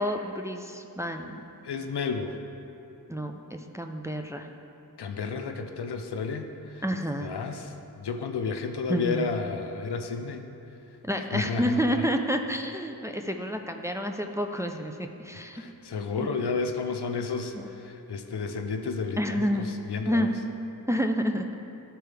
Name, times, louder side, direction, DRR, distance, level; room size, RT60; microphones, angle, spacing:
voice 1, 0.0-1.3 3.1-4.5 6.8-7.3 8.9-9.3 11.0-15.7 16.2-16.3 17.5-17.7 19.2-19.6 20.1-20.3 20.9-21.4, equal, 10° right, 4 dB, 0.4 m, -29 dB
voice 2, 1.6-2.4 5.0-6.8 7.2-10.5 11.3-12.0 15.5-20.3, left 4 dB, 85° left, 6 dB, 0.6 m, -32 dB
12.5 x 4.5 x 3.4 m, 2.8 s
wide cardioid pair, 45°, 39 cm